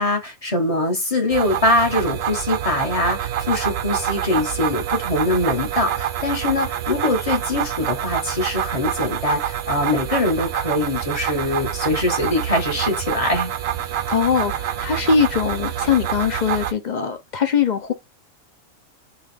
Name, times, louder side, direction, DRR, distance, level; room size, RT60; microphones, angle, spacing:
voice 1, 0.0-13.5, left 2 dB, 25° left, 1.4 m, -23 dB
sound 1, 1.3-16.7, right 10 dB, 65° right, 0.6 m, -26 dB
voice 2, 14.1-17.9, left 6 dB, 55° left, 0.5 m, -21 dB
5.5 x 2.5 x 3.3 m
omnidirectional pair, 1.5 m